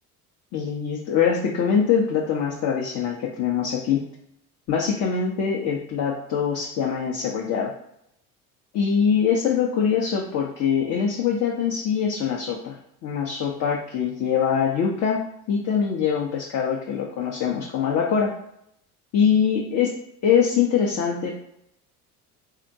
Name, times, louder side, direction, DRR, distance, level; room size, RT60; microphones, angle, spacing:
voice 1, 0.5-4.1 4.7-7.7 8.7-12.7 13.0-18.3 19.1-20.0 20.2-21.4, left 7 dB, 40° left, -2 dB, 0.6 m, -23 dB
3.5 x 2.1 x 2.6 m, 0.76 s
hypercardioid pair, 65°, 46 cm